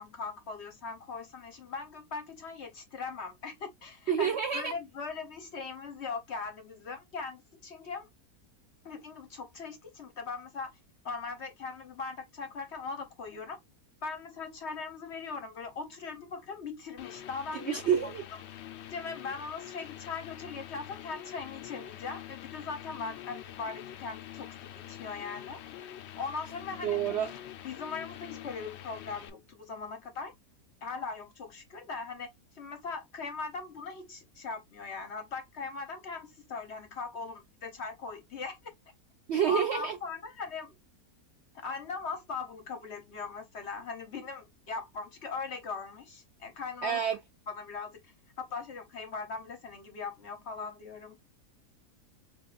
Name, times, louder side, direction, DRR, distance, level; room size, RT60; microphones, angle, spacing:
voice 1, 0.0-8.1 8.8-10.8 11.0-13.6 14.0-17.8 18.9-25.6 26.1-27.0 27.6-30.3 30.8-32.3 32.5-38.6 39.5-40.7 41.5-47.0 47.5-51.2, left 4 dB, 55° left, 0.9 m, -40 dB
voice 2, 4.1-4.7 17.5-18.2 26.8-27.3 39.3-40.0 46.8-47.2, right 8 dB, 70° right, 0.6 m, -28 dB
sound 1, 17.0-29.3, left 12 dB, 80° left, 0.6 m, -45 dB
4.0 x 3.2 x 2.3 m
omnidirectional pair, 1.7 m